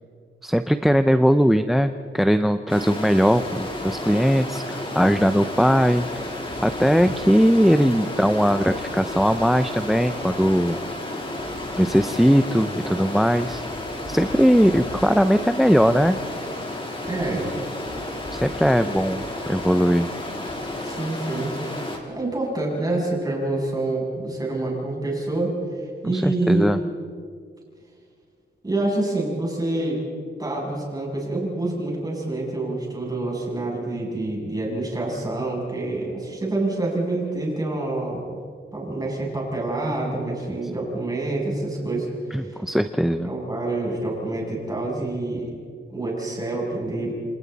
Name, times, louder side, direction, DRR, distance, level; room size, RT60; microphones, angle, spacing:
voice 1, 0.4-6.2 6.6-10.8 11.8-13.7 14.1-16.2 18.3-20.1 26.1-26.8 42.3-43.3, equal, ahead, 10 dB, 0.5 m, -20 dB
Stream, 2.7-22.0, left 1 dB, 25° left, 3.4 m, -32 dB
Wind instrument woodwind instrument, 8.3-13.5, left 4 dB, 85° left, 5.1 m, -47 dB
voice 2, 17.1-17.6 18.8-18.9 20.8-26.8 28.6-30.0 30.4-38.2 38.7-42.6 43.2-45.5 45.9-47.1, right 2 dB, 20° right, -3 dB, 7.7 m, -27 dB
28.0 x 27.0 x 4.1 m, 2.1 s
wide cardioid pair, 130°, 20 cm